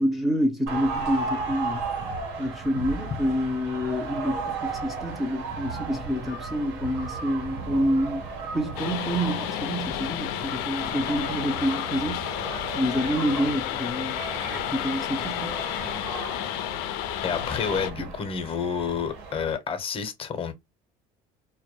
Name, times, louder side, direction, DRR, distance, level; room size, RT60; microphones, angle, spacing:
voice 1, 0.0-1.9 2.4-8.3 8.5-12.5 12.7-14.2 14.7-15.6 18.0-18.1, equal, ahead, 0.5 m, -27 dB
sound 1, 0.7-19.6, right 4 dB, 75° right, 1.1 m, -35 dB
sound 2, 8.8-17.9, left 12 dB, 75° left, 0.4 m, -31 dB
voice 2, 17.2-20.5, left 6 dB, 35° left, 0.7 m, -29 dB
2.2 x 2.1 x 2.9 m
supercardioid pair, 100°, 16 cm